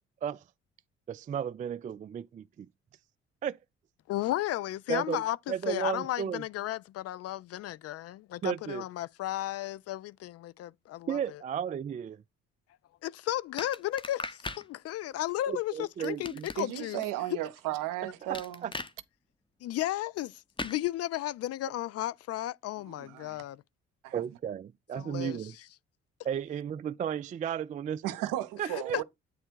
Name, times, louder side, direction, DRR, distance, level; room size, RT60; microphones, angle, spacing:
voice 1, 1.1-2.7 3.4-3.6 4.9-5.2 5.5-6.4 8.4-8.8 11.1-12.2 15.5-16.5 18.0-18.7 24.1-25.6 26.2-28.0 28.6-29.0, right 8 dB, 25° right, 0.3 m, -34 dB
voice 2, 4.1-11.4 13.0-17.0 19.6-23.6 24.9-25.4 28.6-29.0, left 14 dB, 45° left, 0.4 m, -34 dB
sound 1, 13.6-14.7 16.0-17.1 18.3-18.9 20.6-20.8, left 3 dB, 15° left, 0.8 m, -38 dB
voice 3, 16.6-18.7 22.9-23.4 24.0-24.2 28.0-29.0, right 14 dB, 60° right, 0.8 m, -35 dB
8.8 x 3.3 x 4.5 m
figure-of-eight pair, 45°, 36 cm